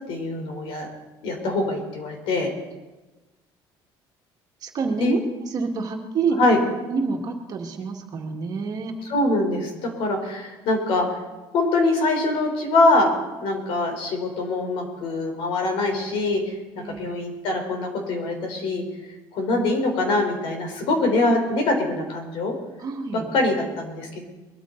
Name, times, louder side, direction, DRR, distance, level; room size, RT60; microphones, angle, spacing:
voice 1, 0.1-0.9 1.2-2.5 5.0-5.2 6.4-6.6 9.1-11.1 11.5-13.1 13.4-18.8 19.3-22.5 23.3-24.2, left 2 dB, 75° left, 3 dB, 4.0 m, -23 dB
voice 2, 4.6-6.4 6.9-8.9 16.7-17.2 22.8-23.3, right 4 dB, 45° right, 3 dB, 1.9 m, -27 dB
22.0 x 13.5 x 4.0 m, 1.2 s
cardioid pair, 145°, 9 cm